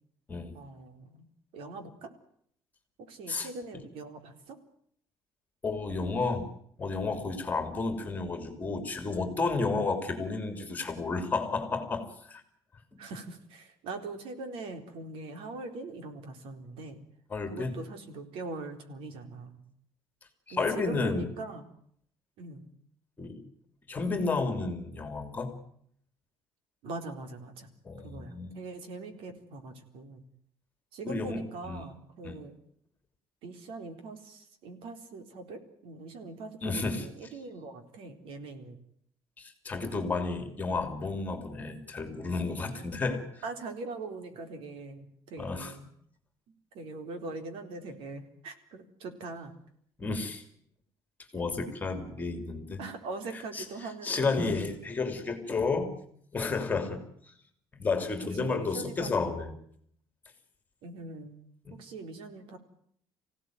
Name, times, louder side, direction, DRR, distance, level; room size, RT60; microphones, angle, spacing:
voice 1, 0.5-1.3 1.5-2.1 3.0-4.6 13.0-17.0 17.5-19.6 20.5-21.6 22.4-22.7 26.8-27.7 28.0-30.2 30.9-32.5 33.4-38.8 42.8-42.9 43.4-45.9 46.7-49.6 52.8-54.4 58.2-59.1 60.8-61.4 61.8-62.6, right 3 dB, 70° right, 7 dB, 4.1 m, -42 dB
voice 2, 5.6-6.5 6.8-12.4 12.9-13.0 17.3-17.7 20.5-21.3 23.2-23.4 23.9-25.5 27.8-28.6 31.0-31.8 32.2-32.4 36.6-37.1 39.4-43.2 45.4-45.7 50.0-50.4 51.3-52.8 53.5-53.6 54.0-55.9 56.3-57.3 57.7-59.5 61.7-61.8, left 3 dB, 15° left, 8 dB, 3.0 m, -32 dB
26.0 x 17.0 x 9.4 m, 0.67 s
cardioid pair, 170°, 9 cm